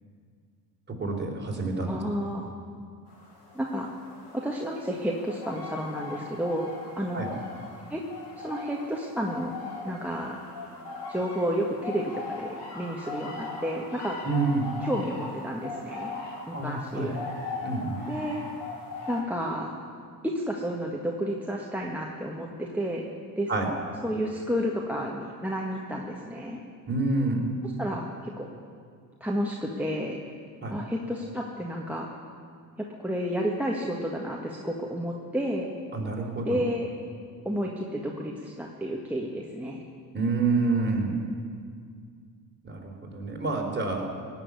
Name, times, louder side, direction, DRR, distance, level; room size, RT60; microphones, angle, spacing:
voice 1, 1.0-2.0 7.1-7.3 14.2-14.7 16.5-17.1 17.6-18.0 23.5-23.7 26.9-27.4 30.6-30.8 35.9-36.6 40.1-41.2 42.6-44.1, right 3 dB, 25° right, 0 dB, 4.2 m, -28 dB
voice 2, 1.9-2.5 3.5-3.9 4.3-6.7 7.0-7.2 7.9-8.0 8.4-9.5 9.8-10.4 11.1-14.2 14.8-16.1 16.5-17.1 18.0-18.4 19.1-19.7 20.2-23.1 23.4-23.5 24.0-26.6 27.6-28.5 29.2-30.2 30.7-32.1 33.0-35.7 36.5-36.9 37.5-39.8, equal, 5° right, -1 dB, 1.8 m, -31 dB
sound 1, 3.1-19.2, left 3 dB, 55° left, 5.3 m, -40 dB
17.5 x 7.4 x 9.7 m, 2.1 s
hypercardioid pair, 60°, 47 cm